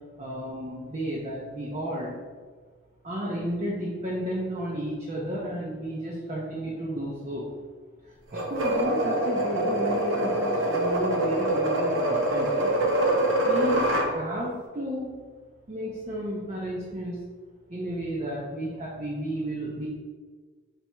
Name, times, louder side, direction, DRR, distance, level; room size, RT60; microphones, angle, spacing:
voice 1, 0.2-2.2 3.0-7.5 8.0-12.7 13.5-15.1 15.7-17.2 17.7-19.9, equal, 30° right, -4 dB, 0.6 m, -33 dB
sound 1, 8.3-14.1, right 1 dB, 75° right, 0.7 m, -25 dB
4.6 x 3.3 x 3.1 m, 1.5 s
head